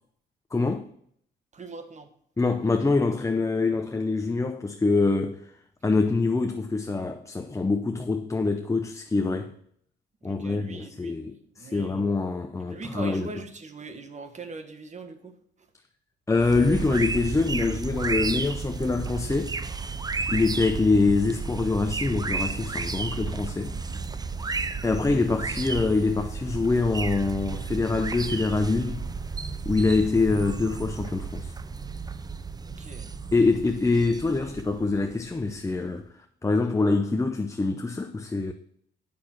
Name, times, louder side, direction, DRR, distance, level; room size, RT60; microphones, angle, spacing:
voice 1, 0.5-0.9 2.4-5.4 5.8-9.5 10.2-13.3 16.3-19.6 20.3-23.8 24.8-29.1 29.6-31.5 33.3-36.1 36.4-38.5, left 3 dB, 15° left, 0.7 m, -25 dB
voice 2, 1.5-2.1 10.2-12.0 12.7-15.3 32.6-33.1, right 3 dB, 35° right, 1.5 m, -41 dB
sound 1, 16.4-35.8, right 4 dB, 20° right, 0.6 m, -33 dB
8.7 x 6.0 x 5.9 m
cardioid pair, 90°, 20 cm